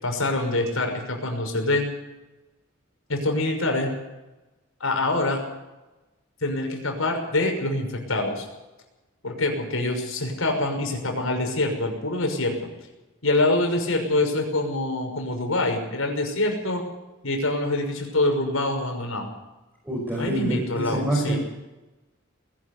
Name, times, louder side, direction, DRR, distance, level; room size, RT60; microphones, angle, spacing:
voice 1, 0.0-1.9 3.1-3.9 4.8-5.4 6.4-8.5 9.2-12.7 13.2-16.8 17.2-19.3 20.2-21.4, left 2 dB, 90° left, 3 dB, 6.1 m, -25 dB
voice 2, 19.8-21.4, right 1 dB, 10° right, -3 dB, 6.0 m, -26 dB
21.0 x 12.5 x 9.9 m, 1.0 s
head